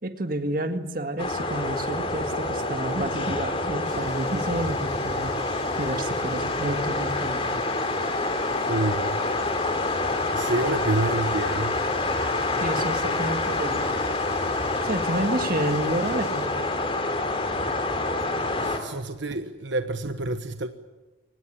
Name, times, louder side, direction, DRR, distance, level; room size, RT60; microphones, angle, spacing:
voice 1, 0.0-5.3 5.8-7.6 12.6-14.0 14.8-16.7, right 1 dB, 45° right, 8 dB, 1.9 m, -30 dB
sound 1, 1.2-18.8, left 2 dB, 30° left, 2.9 m, -27 dB
sound 2, 3.8-16.5, left 4 dB, 50° left, 4.1 m, -46 dB
voice 2, 8.7-9.2 10.3-11.8 18.6-20.7, right 2 dB, 70° right, 9 dB, 1.2 m, -28 dB
24.5 x 19.5 x 8.6 m, 1.2 s
head